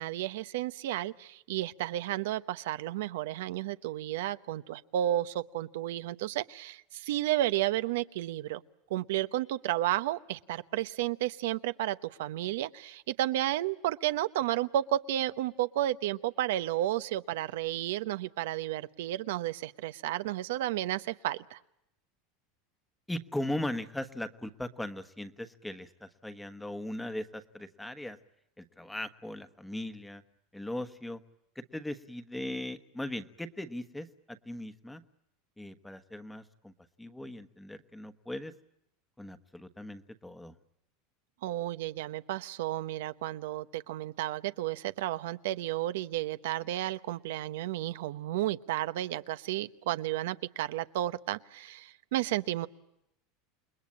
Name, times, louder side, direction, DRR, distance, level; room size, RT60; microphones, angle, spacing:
voice 1, 0.0-8.6 8.9-21.6 41.4-52.7, right 14 dB, 80° right, 12 dB, 1.0 m, -32 dB
voice 2, 23.1-28.2 28.6-30.2 30.5-31.2 31.5-35.0 35.6-36.7 37.0-38.5 39.2-40.5, left 1 dB, 5° left, 10 dB, 1.2 m, -39 dB
29.0 x 21.0 x 8.6 m, 0.81 s
supercardioid pair, 155°, 0 cm